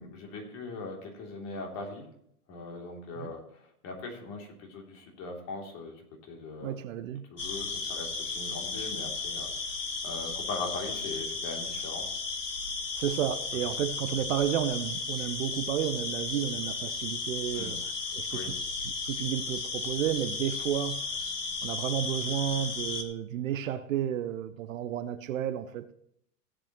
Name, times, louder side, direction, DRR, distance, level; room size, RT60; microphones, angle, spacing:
voice 1, 0.0-2.0 2.5-6.7 7.3-12.0 17.5-17.7 18.3-18.5, left 3 dB, 35° left, 3.1 m, -40 dB
voice 2, 6.6-7.2 13.0-18.4 18.8-21.0 21.6-25.9, right 10 dB, 55° right, 0.8 m, -32 dB
sound 1, 7.4-23.0, left 4 dB, 90° left, 1.4 m, -34 dB
16.5 x 8.4 x 3.1 m
figure-of-eight pair, 110°, 47 cm